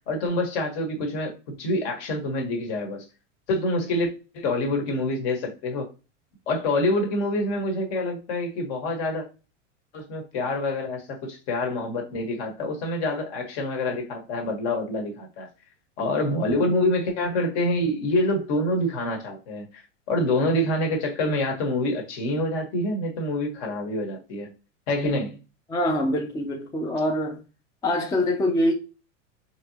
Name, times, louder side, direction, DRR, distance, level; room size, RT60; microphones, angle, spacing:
voice 1, 0.0-3.0 3.5-5.9 6.5-9.2 9.9-11.0 11.3-15.5 16.0-19.8 20.1-24.5 24.9-25.4, left 1 dB, 55° left, 1.5 m, -26 dB
voice 2, 25.7-27.4 27.8-28.7, left 1 dB, 10° left, 0.4 m, -24 dB
3.8 x 2.9 x 2.9 m
hypercardioid pair, 110°, 39 cm